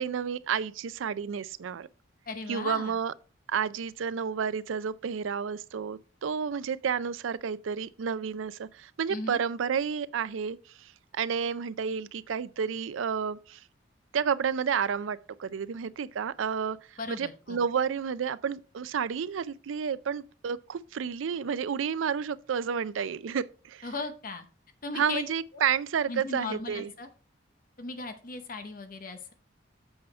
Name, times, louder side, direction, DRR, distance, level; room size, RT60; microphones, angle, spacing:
voice 1, 0.0-1.9 2.5-3.1 3.5-10.9 11.1-13.6 14.1-16.8 17.1-23.9 24.9-26.9, right 7 dB, 90° right, 0.4 m, -31 dB
voice 2, 2.3-3.0 9.1-9.4 17.0-17.6 23.8-24.5 24.8-25.2 25.5-25.6 26.1-27.1 27.8-29.3, left 3 dB, 45° left, 0.8 m, -37 dB
7.9 x 5.6 x 4.2 m
head